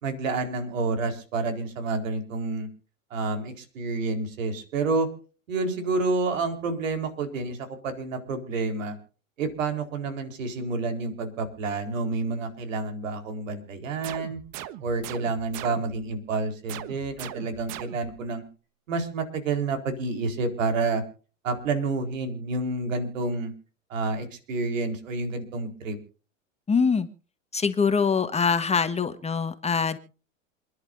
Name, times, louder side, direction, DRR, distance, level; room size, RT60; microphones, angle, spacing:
voice 1, 0.0-2.7 3.1-5.1 5.5-9.0 9.4-14.4 14.8-18.4 18.9-21.0 21.4-23.5 23.9-26.0, right 3 dB, 75° right, 6 dB, 4.3 m, -29 dB
sound 1, 14.0-16.1 16.7-18.3, right 12 dB, 45° right, 1.3 m, -40 dB
voice 2, 26.7-27.1 27.5-30.0, left 5 dB, 15° left, 9 dB, 1.4 m, -24 dB
28.0 x 11.0 x 2.7 m, 0.38 s
hypercardioid pair, 100°, 39 cm